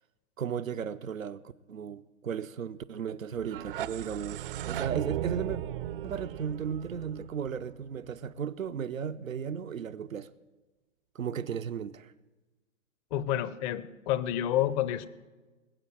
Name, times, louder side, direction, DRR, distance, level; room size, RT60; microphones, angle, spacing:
voice 1, 0.4-5.6 6.0-10.3 11.1-12.1, right 7 dB, 85° right, 0.7 m, -35 dB
sound 1, 3.4-8.3, right 12 dB, 45° right, 0.5 m, -37 dB
voice 2, 13.1-15.1, left 11 dB, 25° left, 0.6 m, -29 dB
20.0 x 8.0 x 7.6 m
figure-of-eight pair, 115°, 39 cm